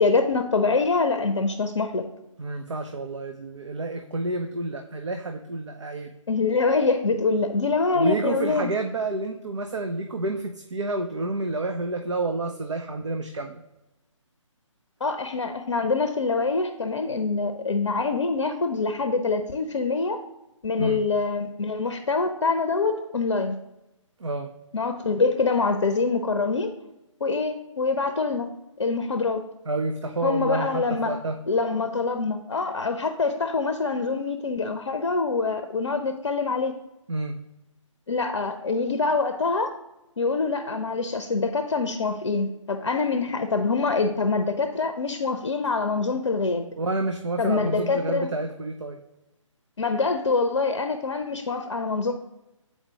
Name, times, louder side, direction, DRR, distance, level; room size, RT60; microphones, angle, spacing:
voice 1, 0.0-2.0 6.3-8.7 15.0-20.2 20.6-23.6 24.7-26.7 27.2-28.5 28.8-29.4 30.2-31.2 31.5-36.7 38.1-39.7 40.2-46.6 47.4-48.3 49.8-52.1, left 4 dB, 60° left, 7 dB, 0.5 m, -25 dB
voice 2, 2.4-6.1 7.9-13.6 20.8-21.0 24.2-24.5 29.7-31.3 37.1-37.4 46.8-49.0, right 2 dB, 65° right, 5 dB, 0.5 m, -29 dB
7.9 x 4.4 x 2.8 m, 0.94 s
figure-of-eight pair, 140°, 17 cm